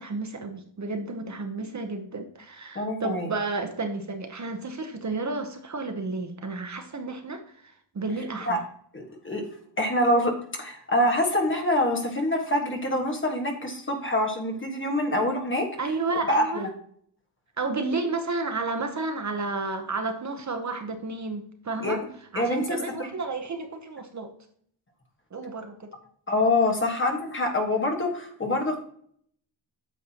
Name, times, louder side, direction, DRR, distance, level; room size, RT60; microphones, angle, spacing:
voice 1, 0.0-8.6 15.8-16.7 17.6-22.0 22.3-24.3 25.3-25.9, right 3 dB, 40° right, 6 dB, 0.8 m, -32 dB
voice 2, 2.7-3.3 8.5-8.6 8.9-9.4 9.8-15.7 16.3-16.7 21.8-22.0 22.3-23.1 26.3-28.7, left 1 dB, 25° left, 2 dB, 1.4 m, -25 dB
9.3 x 6.6 x 2.9 m, 0.62 s
wide cardioid pair, 180°, 46 cm